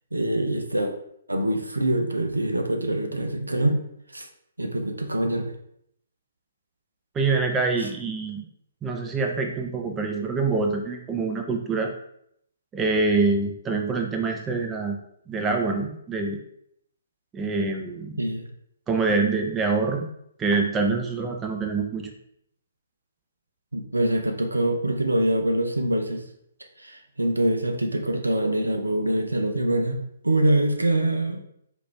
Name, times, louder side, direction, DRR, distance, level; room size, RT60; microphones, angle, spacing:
voice 1, 0.1-0.9 1.3-3.8 4.1-4.3 4.6-5.5 18.2-18.4 23.7-26.2 26.8-31.4, right 1 dB, 80° right, 5 dB, 0.6 m, -24 dB
voice 2, 7.1-8.4 8.8-11.9 12.7-15.0 15.3-16.4 17.3-18.2 18.9-20.1 20.4-22.1, right 4 dB, 15° right, 3 dB, 0.5 m, -25 dB
5.0 x 2.6 x 3.3 m, 0.72 s
figure-of-eight pair, 130°, 0 cm